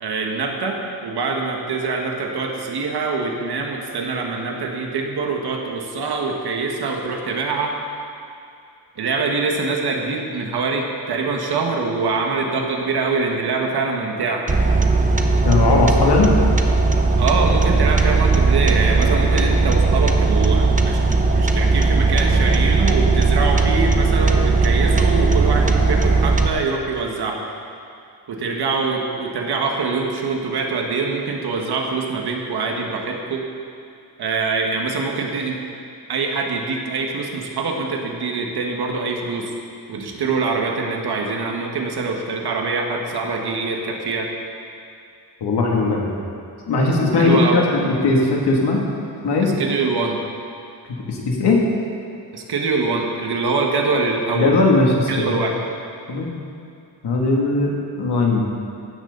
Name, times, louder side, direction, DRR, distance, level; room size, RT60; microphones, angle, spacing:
voice 1, 0.0-7.8 9.0-14.5 17.2-21.0 21.3-27.5 28.3-33.5 34.2-35.6 36.1-39.5 39.9-44.3 47.2-47.6 49.4-50.2 52.3-54.6 55.1-55.6, right 4 dB, 65° right, 1 dB, 1.7 m, -24 dB
sound 1, 14.5-26.5, right 3 dB, 20° right, 0.7 m, -17 dB
voice 2, 15.5-16.3 45.4-46.2 46.7-48.8 49.2-49.5 51.1-51.6 54.3-55.4 56.1-56.3 57.0-57.7 58.0-58.5, left 3 dB, 70° left, -2 dB, 2.6 m, -18 dB
16.5 x 12.5 x 4.0 m, 2.5 s
wide cardioid pair, 170°, 43 cm